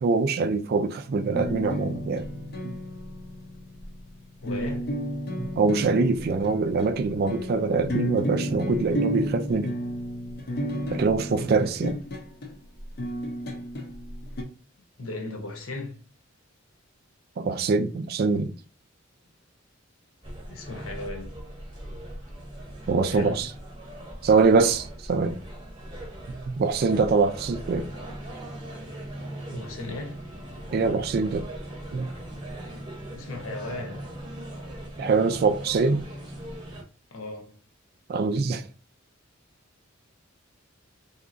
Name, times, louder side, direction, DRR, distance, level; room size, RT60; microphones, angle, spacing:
voice 1, 0.0-2.3 2.6-2.8 5.4-9.7 10.9-12.0 17.4-18.5 22.9-23.5 24.2-25.4 26.3-27.9 29.5-29.6 30.7-31.5 31.9-32.1 35.0-36.0 38.1-38.6, right 4 dB, 50° right, 0.3 m, -24 dB
sound 1, 1.3-14.4, equal, 50° left, 0.5 m, -32 dB
voice 2, 4.4-4.9 15.0-16.0 20.5-21.4 23.1-23.5 29.5-30.2 33.1-34.1 37.1-37.5, left 2 dB, 85° left, 0.9 m, -36 dB
sound 2, 20.2-36.8, right 1 dB, 25° right, 0.7 m, -40 dB
3.5 x 2.8 x 2.5 m
head